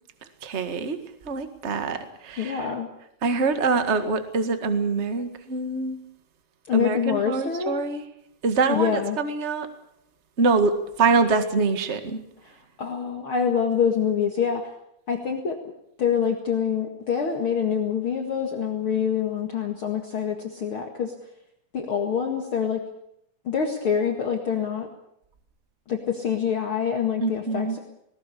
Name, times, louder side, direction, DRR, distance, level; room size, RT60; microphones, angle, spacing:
voice 1, 0.4-1.0 1.2-2.0 2.2-2.7 3.2-6.0 6.7-8.1 8.4-9.7 10.4-12.2 27.2-27.8, right 4 dB, 30° right, 8 dB, 1.6 m, -24 dB
voice 2, 2.4-2.9 6.7-7.8 8.7-9.2 12.8-14.6 15.1-15.6 16.0-21.1 21.7-22.8 23.5-24.9 25.9-27.8, left 7 dB, 45° left, 2 dB, 2.5 m, -25 dB
19.5 x 19.5 x 8.5 m, 0.77 s
omnidirectional pair, 3.5 m